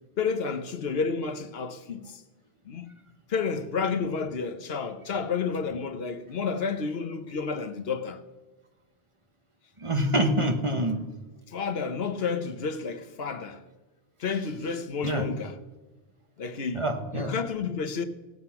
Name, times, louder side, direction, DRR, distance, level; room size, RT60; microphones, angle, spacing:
voice 1, 0.2-2.2 2.6-2.9 3.3-8.2 11.5-13.6 14.2-15.5 16.4-16.8 17.1-18.0, left 5 dB, 75° left, 1.2 m, -30 dB
voice 2, 9.8-11.0 15.0-15.3 16.7-17.3, right 1 dB, 30° right, 1.2 m, -26 dB
17.5 x 8.0 x 5.8 m
omnidirectional pair, 1.0 m